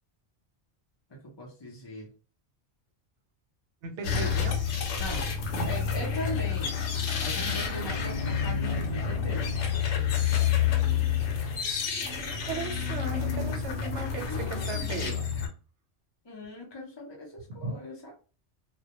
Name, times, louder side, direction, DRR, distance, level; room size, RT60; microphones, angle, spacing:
voice 1, 1.2-2.1 4.9-5.3 5.6-6.8 7.2-10.3 14.0-15.2 16.2-18.1, left 1 dB, 35° left, -2 dB, 0.4 m, -40 dB
voice 2, 3.8-4.6 7.4-7.7 12.5-15.2 17.5-17.7, right 3 dB, 90° right, 4 dB, 0.9 m, -36 dB
sound 1, 4.0-15.5, left 7 dB, 85° left, 0.9 m, -29 dB
2.1 x 2.1 x 2.8 m, 0.36 s
omnidirectional pair, 1.2 m